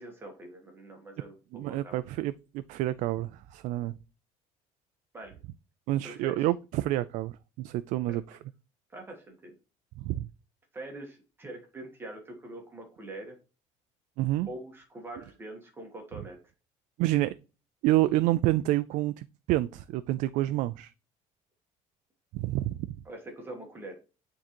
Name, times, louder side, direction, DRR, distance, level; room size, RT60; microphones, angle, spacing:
voice 1, 0.0-1.4 1.7-2.0 5.1-5.4 6.0-6.4 8.1-8.2 8.9-9.5 10.7-13.4 14.4-16.4 23.0-23.9, right 2 dB, 15° right, 1.3 m, -43 dB
voice 2, 1.5-3.9 5.9-8.4 10.0-10.3 14.2-14.5 17.0-17.3 17.8-20.9 22.3-22.9, right 15 dB, 70° right, 0.4 m, -28 dB
9.5 x 3.8 x 3.0 m
cardioid pair, 160°, 13 cm